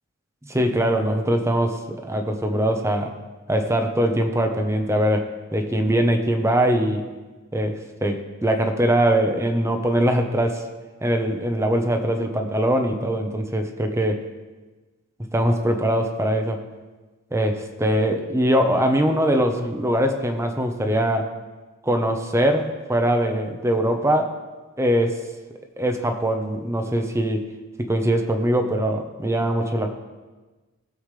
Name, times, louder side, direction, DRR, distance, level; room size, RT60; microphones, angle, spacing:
voice 1, 0.5-3.1 3.5-7.0 7.5-10.6 11.0-14.2 15.3-16.6 17.3-21.3 21.8-24.3 24.8-25.2 25.8-27.4 27.8-29.9, right 1 dB, 15° right, 5 dB, 0.9 m, -22 dB
19.5 x 7.2 x 3.3 m, 1.2 s
head